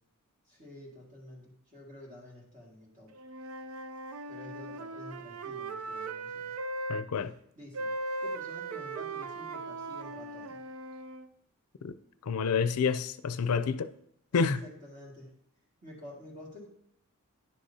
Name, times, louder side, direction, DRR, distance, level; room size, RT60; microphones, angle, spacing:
voice 1, 0.5-3.1 4.3-6.5 7.6-7.9 8.2-10.6 14.3-15.3 15.8-16.7, left 1 dB, 35° right, 2.0 m, -49 dB
Wind instrument woodwind instrument, 3.1-7.1 7.7-11.3, right 2 dB, 70° right, 0.5 m, -38 dB
voice 2, 6.9-7.3 11.8-11.9 12.2-13.9 14.3-14.6, left 5 dB, 90° left, 0.5 m, -28 dB
10.5 x 6.5 x 2.8 m
head